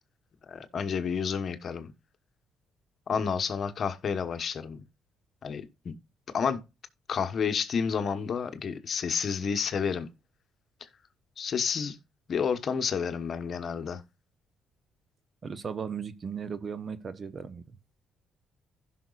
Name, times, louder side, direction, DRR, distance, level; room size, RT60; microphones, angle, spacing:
voice 1, 0.5-1.9 3.1-4.8 5.4-5.9 6.3-6.6 7.1-10.1 11.4-12.0 12.3-14.0, left 6 dB, 50° left, 1.0 m, -30 dB
voice 2, 15.4-17.6, right 6 dB, 40° right, 0.9 m, -36 dB
15.5 x 5.9 x 2.4 m
cardioid pair, 85°, 0 cm